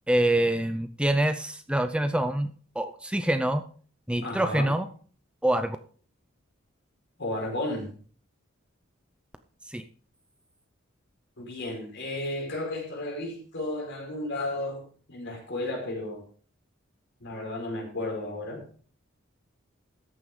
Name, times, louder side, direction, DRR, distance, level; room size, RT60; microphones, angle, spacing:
voice 1, 0.1-2.5 2.8-3.6 4.1-4.9 5.4-5.8 9.7-9.8, right 1 dB, 5° right, 9 dB, 0.6 m, -25 dB
voice 2, 4.2-4.7 7.2-7.9 11.4-14.8 15.1-16.2 17.2-18.6, left 1 dB, 60° left, 1 dB, 5.0 m, -33 dB
14.0 x 9.5 x 3.8 m, 0.43 s
head